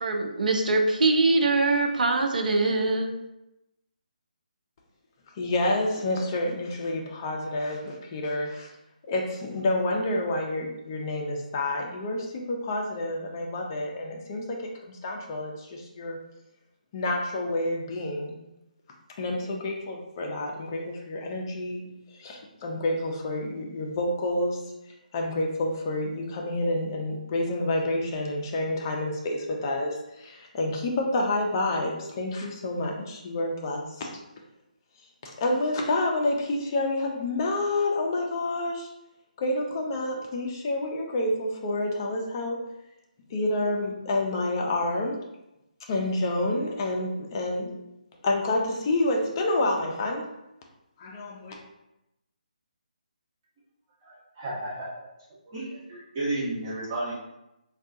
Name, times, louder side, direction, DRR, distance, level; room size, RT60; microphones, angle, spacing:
voice 1, 0.0-3.1, right 2 dB, 65° right, 3 dB, 0.5 m, -23 dB
voice 2, 5.4-8.7 9.1-16.2 16.9-18.4 19.2-21.8 22.1-24.6 25.1-34.1 35.2-38.9 39.4-42.6 43.3-45.2 45.9-47.8 48.2-50.3 51.0-51.6, left 2 dB, 30° left, 0 dB, 0.5 m, -28 dB
voice 3, 54.0-54.9 55.5-57.2, right 2 dB, 25° right, -8 dB, 1.2 m, -32 dB
3.5 x 2.3 x 2.6 m, 0.91 s
hypercardioid pair, 160°, 5 cm